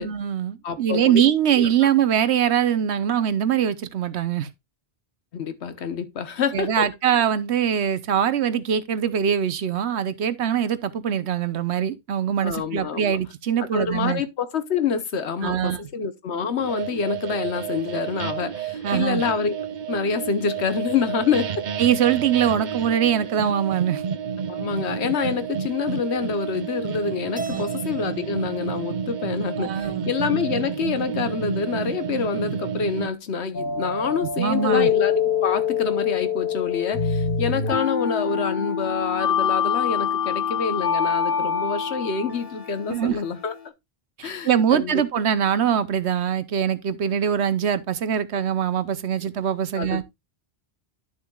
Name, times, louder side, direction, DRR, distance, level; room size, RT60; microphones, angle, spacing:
voice 1, 0.0-4.5 6.5-14.2 15.4-15.8 18.8-19.2 21.8-24.0 27.5-27.7 29.6-30.1 34.4-34.9 42.9-43.2 44.2-50.0, right 9 dB, 90° right, 1.1 m, -23 dB
voice 2, 0.6-1.2 1.6-1.7 5.3-6.9 12.4-13.2 13.7-19.6 19.9-21.6 24.5-43.6 44.2-45.0 49.8-50.0, left 6 dB, 90° left, 1.3 m, -27 dB
sound 1, 16.6-33.1, right 7 dB, 50° right, 0.7 m, -30 dB
Keyboard (musical), 27.4-29.7, right 2 dB, 10° right, 0.8 m, -39 dB
sound 2, 33.5-43.7, left 7 dB, 65° left, 1.5 m, -25 dB
11.5 x 6.6 x 2.3 m
omnidirectional pair, 1.1 m